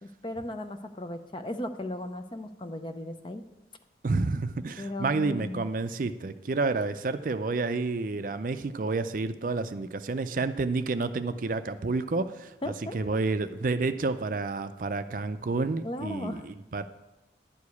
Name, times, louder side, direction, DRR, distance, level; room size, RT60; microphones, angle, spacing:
voice 1, 0.0-3.4 4.8-5.6 12.6-13.0 15.8-16.5, left 1 dB, 25° left, 8 dB, 0.5 m, -36 dB
voice 2, 4.0-12.5 12.9-16.8, right 3 dB, 45° right, 11 dB, 0.4 m, -29 dB
11.5 x 4.8 x 8.3 m, 1.1 s
head